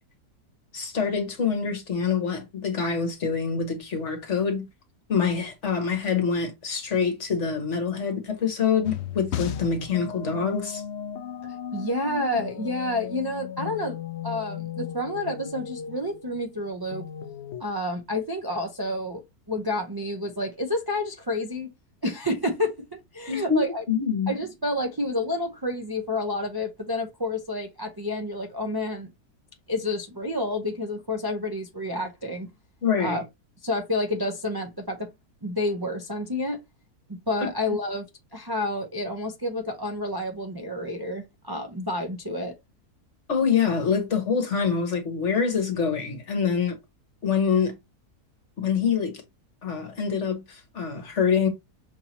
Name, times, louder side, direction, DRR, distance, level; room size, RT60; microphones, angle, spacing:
voice 1, 0.7-4.6 5.1-10.8 23.3-24.3 32.8-33.2 37.4-37.5 43.3-46.8 47.2-47.7 48.6-49.2 49.6-51.5, left 6 dB, 50° left, 1.5 m, -25 dB
sound 1, 8.8-17.6, left 9 dB, 75° left, 0.6 m, -36 dB
voice 2, 11.4-14.0 14.2-17.1 17.6-19.2 19.5-21.7 22.0-23.8 24.3-29.1 29.7-32.5 33.0-33.2 33.6-35.1 35.4-36.6 37.1-38.1 38.3-42.5, left 1 dB, 30° right, 0.4 m, -29 dB
6.4 x 2.7 x 2.9 m
omnidirectional pair, 1.7 m